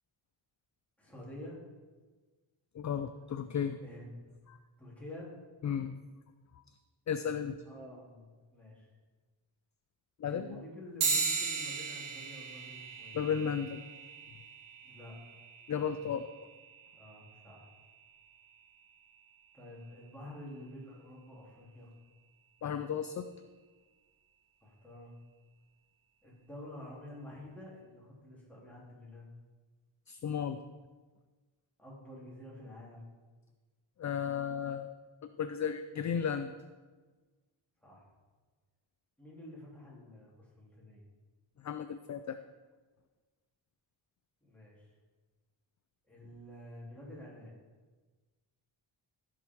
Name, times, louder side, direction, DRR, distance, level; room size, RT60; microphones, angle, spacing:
voice 1, 1.0-1.6 3.8-4.3 4.8-5.3 7.2-7.3 7.6-8.9 10.3-13.2 14.8-15.2 17.0-17.7 19.5-21.9 24.6-25.1 26.2-29.2 31.8-33.1 37.8-38.1 39.2-41.1 44.4-44.9 46.1-47.6, left 1 dB, 5° left, -5 dB, 3.1 m, -49 dB
voice 2, 2.7-3.8 4.5-4.6 5.6-5.9 7.1-7.6 10.2-10.6 13.1-13.8 15.7-16.3 22.6-23.3 30.1-30.6 34.0-34.9 35.2-36.5 41.6-42.4, left 7 dB, 40° left, 10 dB, 0.4 m, -34 dB
sound 1, 11.0-20.8, right 5 dB, 85° right, 1.8 m, -39 dB
15.5 x 6.0 x 4.6 m, 1.3 s
wide cardioid pair, 140°, 48 cm